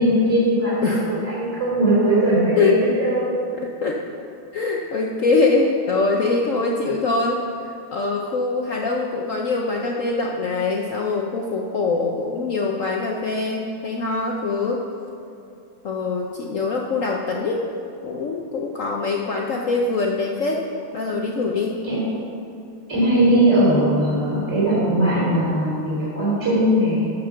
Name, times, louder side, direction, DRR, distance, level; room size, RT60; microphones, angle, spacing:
voice 1, 0.0-3.3 21.8-22.0 22.9-27.1, right 1 dB, 5° right, -8 dB, 2.6 m, -19 dB
voice 2, 3.6-4.0 4.5-14.8 15.8-17.6 18.0-20.6 20.9-21.8, left 3 dB, 65° left, 0 dB, 0.8 m, -23 dB
13.5 x 5.1 x 5.9 m, 2.6 s
omnidirectional pair, 2.2 m